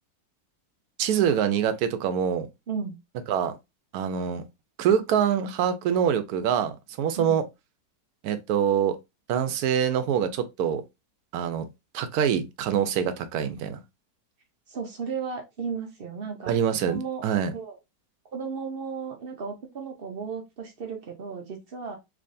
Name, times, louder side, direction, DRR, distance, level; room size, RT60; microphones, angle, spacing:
voice 1, 1.0-2.5 3.3-3.5 3.9-4.4 4.8-7.4 8.2-9.0 9.3-10.8 11.3-11.7 11.9-13.8 16.5-17.5, right 8 dB, 75° right, 1.1 m, -25 dB
voice 2, 14.7-16.6 16.9-17.3 17.5-17.8 18.3-22.0, right 5 dB, 55° right, 0.7 m, -34 dB
3.4 x 3.2 x 2.6 m
omnidirectional pair, 1.7 m